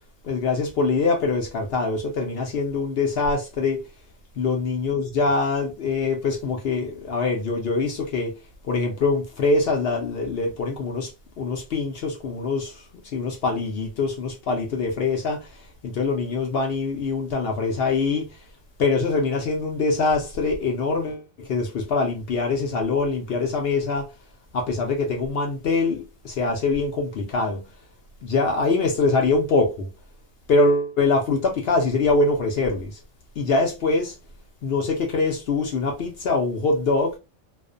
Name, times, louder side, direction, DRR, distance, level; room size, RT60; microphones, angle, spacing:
voice 1, 0.2-3.8 4.4-8.4 8.6-11.1 11.4-18.4 18.8-24.1 24.5-27.7 28.2-29.9 30.5-33.0 33.4-34.2 34.6-37.2, left 3 dB, 65° left, 0.6 m, -24 dB
2.4 x 2.1 x 2.4 m
omnidirectional pair, 1.5 m